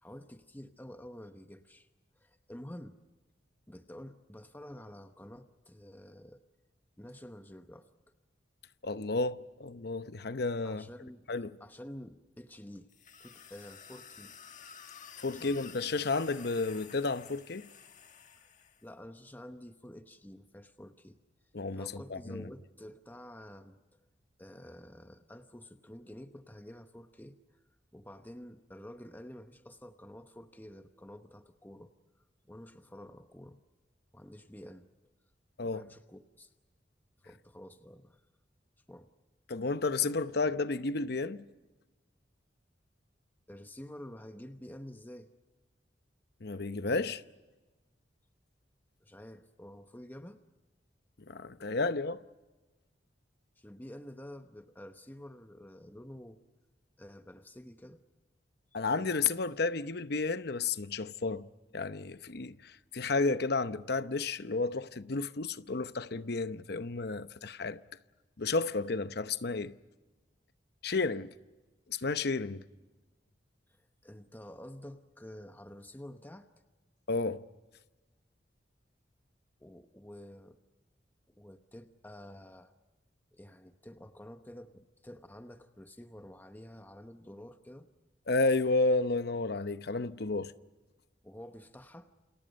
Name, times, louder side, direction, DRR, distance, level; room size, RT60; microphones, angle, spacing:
voice 1, 0.0-1.9 2.1-3.0 3.7-6.4 7.0-7.9 10.6-11.3 11.6-12.9 13.2-14.4 15.3-15.6 18.4-18.5 18.8-21.2 21.7-23.8 24.4-27.6 27.9-31.9 32.4-33.6 34.1-34.9 35.6-36.5 37.2-38.2 38.9-39.1 43.5-45.3 49.0-50.4 53.6-56.4 57.0-58.0 73.7-76.5 79.6-80.6 81.3-82.7 83.3-87.9 91.2-92.1, left 1 dB, 10° left, 1.0 m, -49 dB
voice 2, 8.8-10.9 11.3-11.5 15.2-17.7 21.5-22.4 35.6-35.8 39.5-41.4 46.4-47.2 51.3-52.2 58.7-61.5 61.7-67.8 68.4-69.7 70.8-71.3 71.9-72.6 77.1-77.4 88.3-90.5, left 3 dB, 60° left, 0.8 m, -32 dB
sound 1, 12.9-18.9, left 7 dB, 45° left, 1.6 m, -52 dB
29.0 x 27.5 x 5.3 m
head